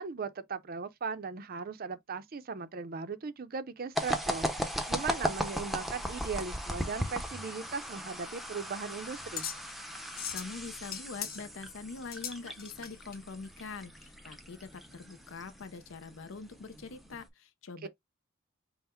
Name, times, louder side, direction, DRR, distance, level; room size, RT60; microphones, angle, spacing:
voice 1, 0.0-9.5 17.8-17.9, right 5 dB, 45° right, 0.5 m, -38 dB
sound 1, 4.0-17.3, equal, ahead, 0.6 m, -38 dB
sound 2, 8.0-13.2, left 8 dB, 45° left, 1.0 m, -42 dB
voice 2, 10.3-17.9, left 4 dB, 60° left, 0.5 m, -44 dB
5.5 x 2.1 x 4.3 m
head